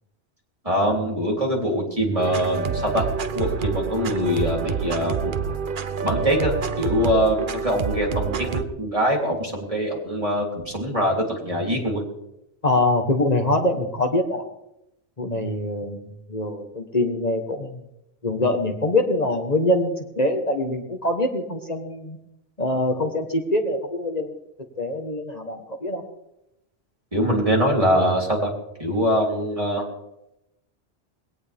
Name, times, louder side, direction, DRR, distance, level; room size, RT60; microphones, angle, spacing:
voice 1, 0.6-5.3 6.0-12.0 27.1-28.5 28.8-29.8, equal, 30° right, -1 dB, 3.5 m, -23 dB
sound 1, 2.2-8.6, right 6 dB, 50° right, 1.0 m, -27 dB
voice 2, 12.6-14.4 15.2-17.8 18.2-22.2 22.6-24.3 24.8-26.0, left 1 dB, 40° left, 4 dB, 1.5 m, -24 dB
20.5 x 17.5 x 3.6 m, 0.86 s
omnidirectional pair, 1.1 m